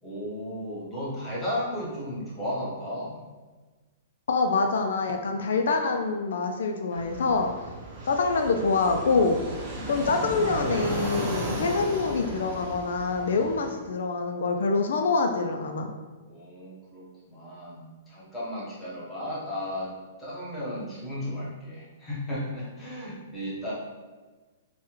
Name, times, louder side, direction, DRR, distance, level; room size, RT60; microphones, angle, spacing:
voice 1, 0.0-3.2 16.3-23.7, left 1 dB, 10° left, -8 dB, 1.0 m, -34 dB
voice 2, 4.3-7.5 8.1-9.4 9.9-15.9, left 4 dB, 80° left, 4 dB, 0.3 m, -25 dB
Fixed-wing aircraft airplane, 6.9-13.7, right 1 dB, 35° right, 0.7 m, -35 dB
3.3 x 2.2 x 3.0 m, 1.3 s
hypercardioid pair, 150°, 0 cm